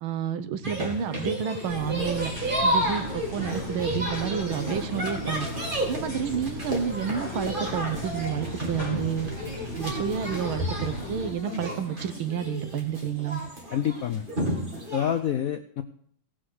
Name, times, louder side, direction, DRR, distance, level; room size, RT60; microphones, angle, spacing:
voice 1, 0.0-2.3 2.6-5.5 5.9-9.3 9.8-13.4, right 8 dB, 85° right, 11 dB, 1.7 m, -30 dB
sound 1, 0.6-15.2, right 1 dB, 25° right, 2.5 m, -32 dB
sound 2, 1.7-11.3, left 2 dB, 10° left, 3.3 m, -37 dB
voice 2, 13.7-14.2 14.9-15.8, left 9 dB, 80° left, 8 dB, 0.7 m, -27 dB
17.5 x 6.3 x 6.3 m, 0.66 s
omnidirectional pair, 2.2 m